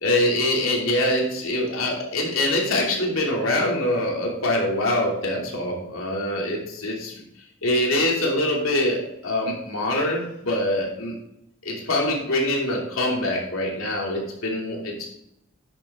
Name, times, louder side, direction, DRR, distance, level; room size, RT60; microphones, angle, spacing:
voice 1, 0.0-7.1 7.6-11.1 11.6-15.1, left 1 dB, 85° left, -2 dB, 2.9 m, -24 dB
10.0 x 7.1 x 3.7 m, 0.79 s
head